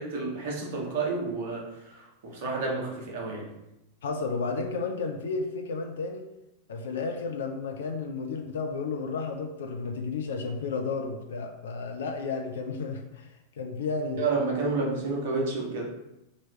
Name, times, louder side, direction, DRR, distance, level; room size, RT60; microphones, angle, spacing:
voice 1, 0.0-3.5 14.2-15.9, right 3 dB, 50° right, -2 dB, 1.1 m, -30 dB
voice 2, 4.0-6.2 6.7-13.3 13.6-14.2, left 4 dB, 60° left, 4 dB, 0.4 m, -32 dB
3.1 x 2.9 x 4.4 m, 0.92 s
figure-of-eight pair, 90°, 0 cm